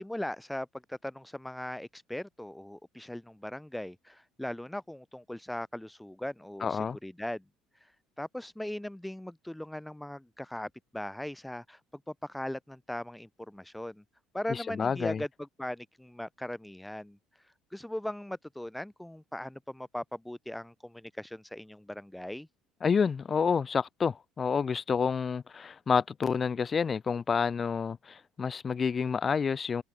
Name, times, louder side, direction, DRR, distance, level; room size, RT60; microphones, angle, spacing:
voice 1, 0.0-7.4 7.8-7.9 8.2-11.8 12.1-14.0 14.3-17.2 17.7-22.5, left 1 dB, 5° left, 7.1 m, -39 dB
voice 2, 6.6-7.0 14.5-15.2 22.8-29.8, left 6 dB, 30° left, 3.9 m, -29 dB
cardioid pair, 125°, 0 cm